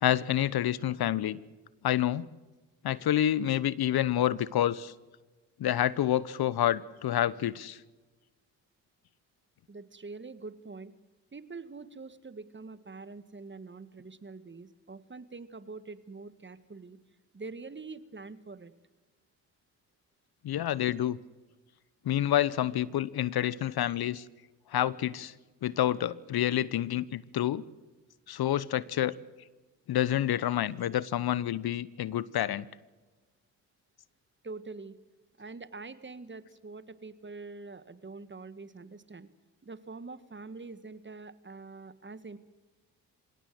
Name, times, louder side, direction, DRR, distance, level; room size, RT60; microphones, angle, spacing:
voice 1, 0.0-1.4 1.8-2.3 2.8-4.9 5.6-7.8 20.4-21.2 22.1-24.2 24.7-25.3 25.6-27.6 28.3-29.1 29.9-32.6, left 12 dB, 55° left, 21 dB, 0.9 m, -28 dB
voice 2, 9.7-10.9 11.3-17.0 17.3-18.7 34.4-35.0 35.4-39.3 39.6-42.4, right 3 dB, 25° right, 14 dB, 1.6 m, -45 dB
25.5 x 17.5 x 7.8 m, 1.2 s
hypercardioid pair, 50°, 46 cm